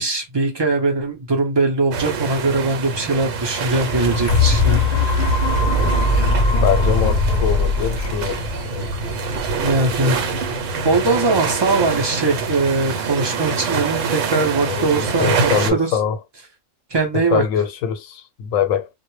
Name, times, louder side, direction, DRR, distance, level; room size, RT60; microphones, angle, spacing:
voice 1, 0.0-4.8 9.6-10.2 10.8-15.9 16.9-17.4, right 3 dB, 40° right, 0.4 m, -21 dB
sound 1, 1.9-15.7, right 5 dB, 75° right, 1.0 m, -26 dB
sound 2, 3.5-11.5 12.1-12.2, left 2 dB, 50° left, 0.6 m, -21 dB
voice 2, 5.6-6.0 6.6-8.9 14.7-16.2 17.1-18.9, left 8 dB, 85° left, 1.0 m, -23 dB
2.2 x 2.0 x 3.0 m
omnidirectional pair, 1.3 m